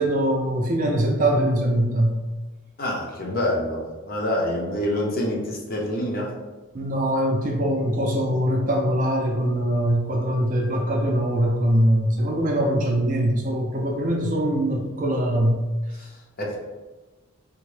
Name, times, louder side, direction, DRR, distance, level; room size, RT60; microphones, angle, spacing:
voice 1, 0.0-2.2 6.7-15.6, right 1 dB, 40° right, 1 dB, 0.4 m, -22 dB
voice 2, 2.8-6.3 16.0-16.1 16.4-16.6, left 1 dB, 40° left, -2 dB, 0.6 m, -26 dB
3.6 x 2.1 x 3.2 m, 1.2 s
head